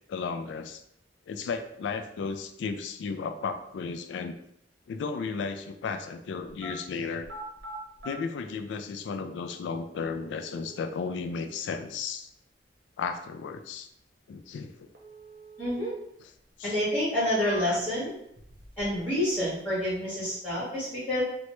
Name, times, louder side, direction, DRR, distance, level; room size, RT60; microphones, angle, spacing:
voice 1, 0.1-0.8 1.3-4.4 4.9-7.3 8.0-12.3 13.0-13.9 14.3-14.9 16.2-16.3 16.6-16.7 17.6-17.8, left 5 dB, 80° left, 8 dB, 0.3 m, -34 dB
sound 1, 6.5-6.8 7.2-8.2 9.1-9.2 9.9-11.0 14.9-16.0 16.4-16.5 17.1-17.9 18.4-19.1 19.4-20.0, right 2 dB, 80° right, 0.7 m, -45 dB
voice 2, 15.6-15.9 16.6-18.1 18.8-21.2, left 1 dB, 10° left, -12 dB, 1.4 m, -28 dB
3.0 x 2.2 x 3.0 m, 0.75 s
head